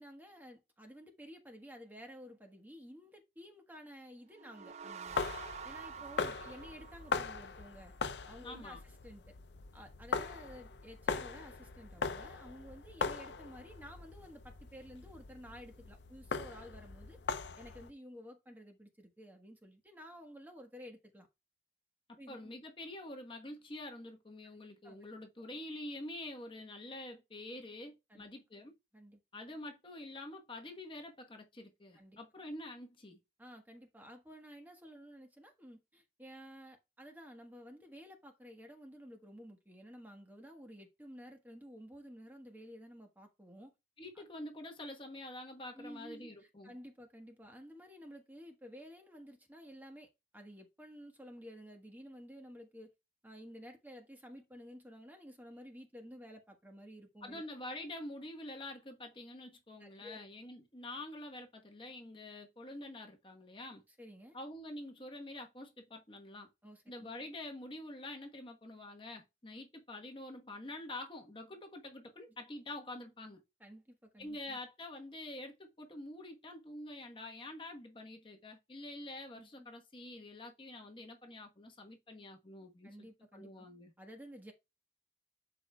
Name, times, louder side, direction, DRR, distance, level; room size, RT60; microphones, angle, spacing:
voice 1, 0.0-5.2 5.6-7.9 8.3-9.3 9.7-17.2 17.6-21.3 22.2-22.4 24.8-25.0 25.4-25.5 28.1-28.2 28.9-29.2 31.9-32.2 33.4-43.7 44.1-44.2 45.7-50.1 50.3-52.9 53.2-57.5 59.8-60.2 64.0-64.4 66.6-67.1 73.6-74.6 79.4-79.7 82.8-83.7 84.0-84.5, equal, 10° right, 1.4 m, -52 dB
sound 1, 4.3-7.8, right 7 dB, 40° right, 0.4 m, -48 dB
sound 2, 5.1-17.9, left 4 dB, 80° left, 0.6 m, -40 dB
voice 2, 8.4-8.8 22.3-28.7 29.3-33.2 44.0-46.8 57.2-63.8 64.3-66.5 66.9-73.4 74.2-83.9, left 1 dB, 30° left, 1.2 m, -47 dB
12.0 x 4.9 x 2.3 m
head